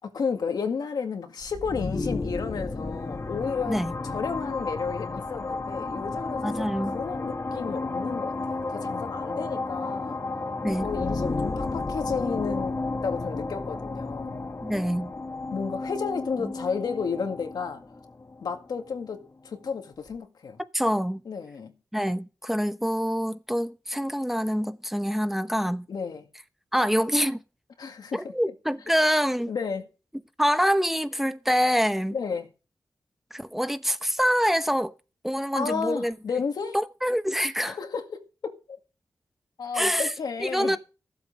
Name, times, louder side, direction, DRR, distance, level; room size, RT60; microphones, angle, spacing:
voice 1, 0.1-6.5 6.8-10.2 10.7-12.7 13.0-14.4 15.5-17.8 18.4-20.6 21.3-21.7 25.9-26.3 27.8-28.5 29.1-29.9 32.1-32.5 35.5-36.8 37.7-38.8 39.6-40.8, left 5 dB, 85° left, 2.0 m, -32 dB
sound 1, 1.4-19.1, left 3 dB, 45° left, 1.5 m, -32 dB
voice 2, 6.4-7.0 10.6-10.9 14.6-15.1 16.4-16.5 20.7-21.2 21.9-25.9 26.7-27.4 28.1-29.5 30.4-32.2 33.3-34.9 35.2-36.1 36.7-37.8 39.7-40.1 40.4-40.8, equal, 5° right, 0.9 m, -25 dB
14.5 x 7.8 x 5.2 m
cardioid pair, 60°, 7 cm